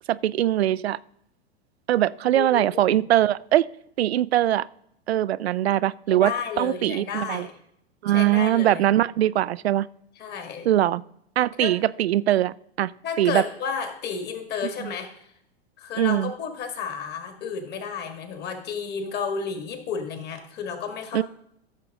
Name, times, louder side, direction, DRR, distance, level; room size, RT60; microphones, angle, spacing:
voice 1, 0.1-1.0 1.9-3.7 4.0-4.7 5.1-7.5 8.0-9.9 10.7-11.0 11.4-12.9 13.2-13.4 14.8-14.9 16.0-16.3 21.1-21.2, right 13 dB, 80° right, 19 dB, 0.5 m, -22 dB
voice 2, 2.3-3.0 6.1-7.5 8.1-8.8 10.2-10.7 11.6-11.7 13.0-15.1 15.8-21.2, left 6 dB, 30° left, 6 dB, 2.1 m, -32 dB
15.0 x 6.6 x 3.7 m, 0.74 s
hypercardioid pair, 100°, 31 cm